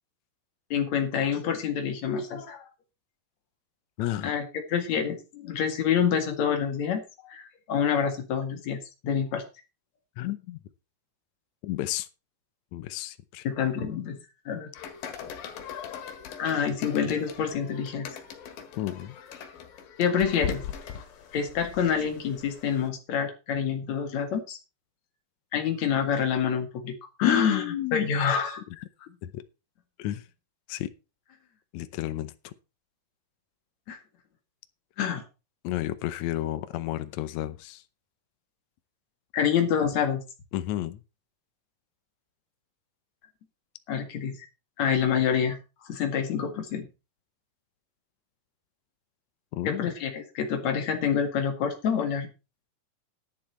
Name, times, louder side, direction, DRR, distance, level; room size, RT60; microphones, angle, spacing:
voice 1, 0.7-2.7 4.2-9.4 13.4-14.2 14.5-14.7 16.4-18.1 20.0-20.6 21.3-24.6 25.5-27.6 27.9-28.6 33.9-34.0 35.0-35.2 39.3-40.2 43.9-44.4 44.8-45.6 45.9-46.9 49.6-52.3, left 7 dB, 55° left, 2.9 m, -27 dB
voice 2, 4.0-4.3 10.2-10.6 11.6-12.1 12.7-13.5 18.8-19.1 27.2-28.1 29.2-29.4 30.0-30.3 30.7-30.9 31.7-32.5 35.6-37.8 40.5-41.0 49.5-49.9, left 13 dB, 85° left, 1.6 m, -31 dB
sound 1, 14.7-22.9, left 8 dB, 70° left, 3.2 m, -40 dB
11.0 x 10.5 x 4.4 m
omnidirectional pair, 4.3 m